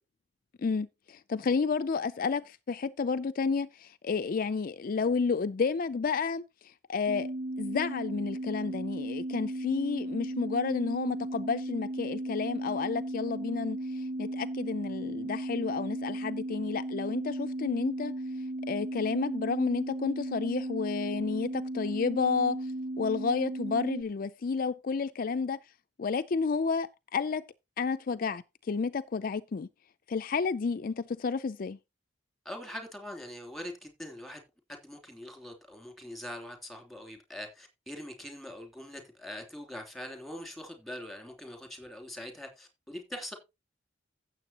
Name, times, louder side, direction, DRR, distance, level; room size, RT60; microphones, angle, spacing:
voice 1, 0.6-7.3 7.6-18.1 18.6-22.7 23.0-25.6 26.0-27.4 27.8-29.7 30.1-31.8, left 5 dB, 50° left, 0.4 m, -31 dB
sound 1, 7.1-24.0, right 1 dB, 60° right, 1.7 m, -36 dB
voice 2, 32.4-34.4 34.7-43.3, left 1 dB, ahead, 2.9 m, -43 dB
15.0 x 7.3 x 2.9 m
head